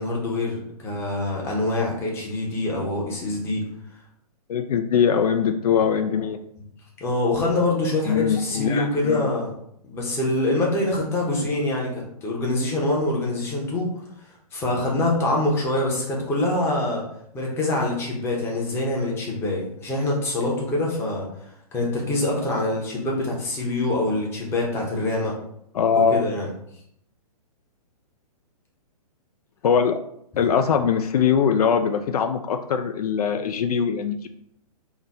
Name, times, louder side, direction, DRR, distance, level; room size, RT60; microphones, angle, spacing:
voice 1, 0.0-3.6 7.0-9.5 9.8-13.9 14.5-17.0 17.3-21.3 21.7-25.3 25.9-26.5, left 2 dB, 15° left, -2 dB, 0.8 m, -25 dB
voice 2, 4.5-6.4 8.1-9.3 25.7-26.3 29.6-30.0 30.4-34.3, left 7 dB, 70° left, 8 dB, 0.4 m, -22 dB
3.9 x 2.2 x 4.0 m, 0.72 s
hypercardioid pair, 150°, 20 cm